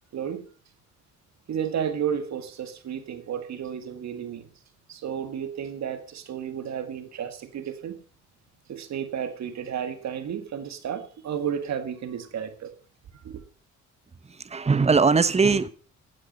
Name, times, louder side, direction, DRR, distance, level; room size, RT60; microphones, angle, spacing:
voice 1, 0.1-0.4 1.5-4.5 4.9-8.0 8.7-12.7 13.1-13.4, right 8 dB, 65° right, 2.0 m, -32 dB
voice 2, 14.2-15.7, right 4 dB, 20° right, 0.9 m, -21 dB
15.5 x 8.8 x 5.5 m
cardioid pair, 90°, 30 cm